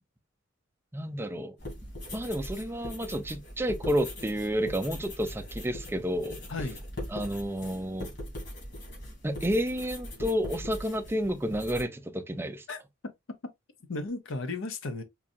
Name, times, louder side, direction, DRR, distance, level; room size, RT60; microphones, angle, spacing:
voice 1, 0.9-1.6 2.1-6.4 7.1-8.1 9.2-12.6, equal, 10° right, 0.4 m, -30 dB
sound 1, 1.6-11.8, left 1 dB, 60° left, 2.2 m, -41 dB
voice 2, 12.7-13.1 13.9-15.0, left 2 dB, 85° left, 0.7 m, -35 dB
4.6 x 2.6 x 2.6 m
head